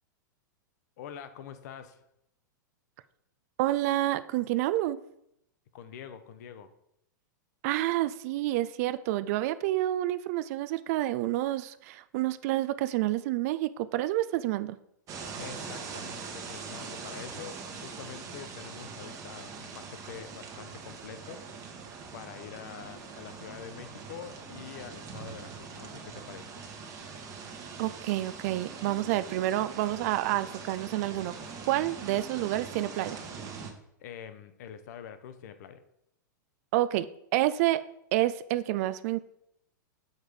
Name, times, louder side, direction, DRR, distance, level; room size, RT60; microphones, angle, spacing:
voice 1, 1.0-2.0 5.7-6.7 15.4-21.4 22.1-26.5 34.0-35.8, left 8 dB, 55° left, 10 dB, 0.8 m, -45 dB
voice 2, 3.6-5.0 7.6-14.8 27.8-31.3 31.7-33.2 36.7-37.1 37.3-37.8 38.1-39.2, right 15 dB, 50° right, 14 dB, 0.3 m, -28 dB
sound 1, 15.1-33.7, right 5 dB, 30° right, 1.1 m, -42 dB
6.6 x 4.6 x 5.0 m, 0.78 s
hypercardioid pair, 100°, 11 cm